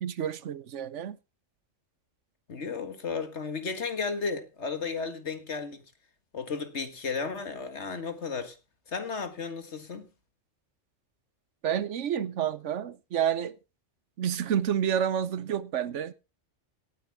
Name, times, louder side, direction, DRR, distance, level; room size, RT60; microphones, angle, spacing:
voice 1, 0.0-1.2 11.6-13.5 14.2-16.1, right 9 dB, 75° right, 1.1 m, -29 dB
voice 2, 2.5-5.8 6.3-8.6 8.9-10.1, left 5 dB, 65° left, 2.0 m, -34 dB
18.0 x 8.9 x 3.5 m
omnidirectional pair, 1.3 m